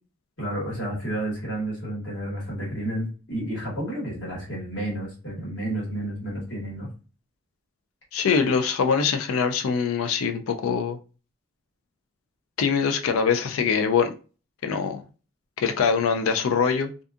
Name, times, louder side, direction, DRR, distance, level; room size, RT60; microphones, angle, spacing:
voice 1, 0.4-6.9, right 1 dB, 60° left, 1.4 m, -31 dB
voice 2, 8.1-11.0 12.6-14.1 14.6-15.0 15.6-16.9, left 6 dB, 80° left, 0.4 m, -23 dB
2.6 x 2.4 x 2.4 m
head